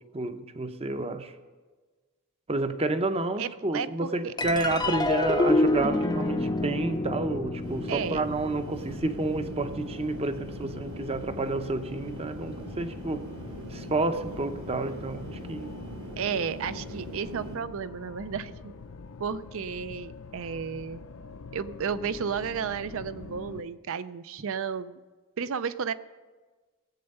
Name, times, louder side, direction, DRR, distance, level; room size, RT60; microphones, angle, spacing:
voice 1, 0.1-1.3 2.5-13.3 13.7-15.7, right 2 dB, 30° right, 10 dB, 0.7 m, -30 dB
voice 2, 3.4-4.3 7.9-8.3 10.6-10.7 16.2-18.7 19.2-21.0 21.5-25.0 25.4-25.9, right 6 dB, 65° right, 15 dB, 0.5 m, -33 dB
sound 1, 4.4-23.6, left 4 dB, 65° left, 0.6 m, -44 dB
sound 2, 4.4-11.1, left 2 dB, 20° left, 0.5 m, -29 dB
sound 3, 7.6-17.6, equal, 85° right, 2.8 m, -41 dB
18.5 x 7.9 x 5.4 m, 1.3 s
head